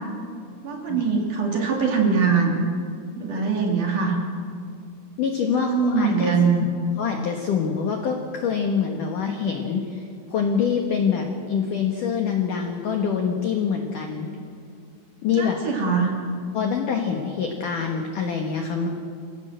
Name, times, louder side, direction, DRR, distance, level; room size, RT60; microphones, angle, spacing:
voice 1, 0.6-2.7 3.2-4.2 5.6-6.6 15.3-16.2, right 5 dB, 45° right, 0 dB, 3.5 m, -22 dB
voice 2, 5.2-6.3 7.0-14.3 15.2-15.7 16.5-18.9, left 6 dB, 70° left, 3 dB, 2.0 m, -25 dB
25.5 x 16.5 x 7.9 m, 2.3 s
omnidirectional pair, 5.7 m